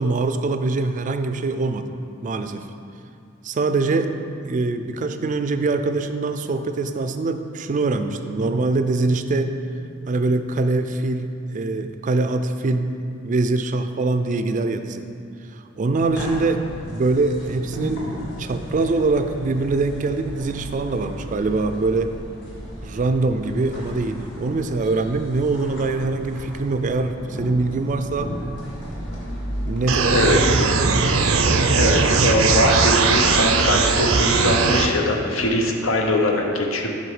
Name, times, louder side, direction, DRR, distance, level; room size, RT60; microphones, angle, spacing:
voice 1, 0.0-1.9 2.2-2.7 3.4-4.1 4.4-9.5 10.1-12.9 13.2-15.1 15.8-16.6 16.9-18.1 18.4-22.1 22.8-28.3 29.6-31.0, right 3 dB, 40° right, 9 dB, 0.4 m, -23 dB
sound 1, 16.0-34.5, equal, 60° left, 1.7 m, -34 dB
sound 2, 29.9-34.9, right 4 dB, 85° right, 0.6 m, -19 dB
voice 2, 31.8-36.9, left 1 dB, 85° left, 2 dB, 1.0 m, -21 dB
7.7 x 5.6 x 4.9 m, 2.5 s
head